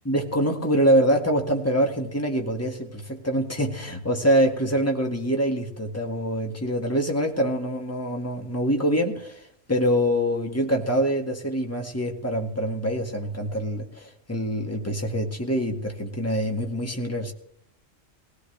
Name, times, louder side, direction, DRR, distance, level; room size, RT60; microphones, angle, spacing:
voice 1, 0.1-9.4 9.7-17.3, equal, 10° left, 2 dB, 1.9 m, -25 dB
21.0 x 16.5 x 3.4 m, 0.68 s
omnidirectional pair, 1.3 m